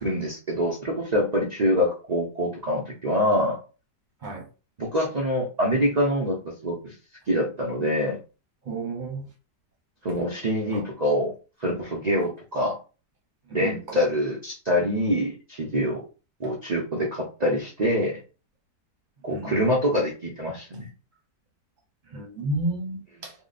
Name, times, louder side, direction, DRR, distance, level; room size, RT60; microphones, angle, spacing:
voice 1, 0.0-3.6 4.8-6.9 7.3-8.2 10.0-11.3 11.6-12.8 13.5-16.0 16.4-18.2 19.2-20.9, equal, 70° right, 0.4 m, -25 dB
voice 2, 8.7-9.3 13.5-13.8 15.7-15.9 19.3-19.5 22.1-23.3, right 2 dB, 40° right, 0.8 m, -31 dB
2.9 x 2.2 x 3.9 m
omnidirectional pair, 1.8 m